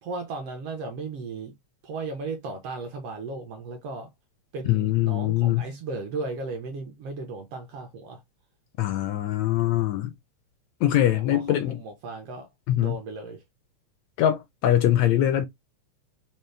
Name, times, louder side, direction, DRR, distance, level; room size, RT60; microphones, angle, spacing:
voice 1, 0.0-1.5 1.8-4.1 4.5-8.2 11.1-13.4, right 3 dB, 75° right, 1.4 m, -36 dB
voice 2, 4.6-5.7 8.8-10.1 10.8-11.8 12.7-13.0 14.2-15.5, left 12 dB, 80° left, 1.5 m, -23 dB
5.3 x 2.0 x 3.1 m
omnidirectional pair, 3.5 m